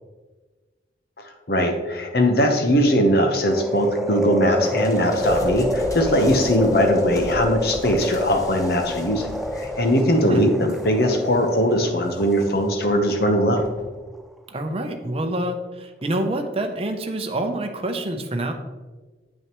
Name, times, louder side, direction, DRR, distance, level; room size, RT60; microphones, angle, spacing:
voice 1, 1.2-13.7, equal, 60° left, 4 dB, 1.0 m, -20 dB
sound 1, 3.5-13.7 14.1-14.2, left 1 dB, ahead, 0.3 m, -28 dB
sound 2, 4.6-11.6 12.1-12.7 13.6-13.9, equal, 20° left, 0.8 m, -37 dB
voice 2, 14.5-18.5, right 1 dB, 30° right, 5 dB, 0.7 m, -27 dB
8.6 x 6.2 x 3.1 m, 1.3 s
head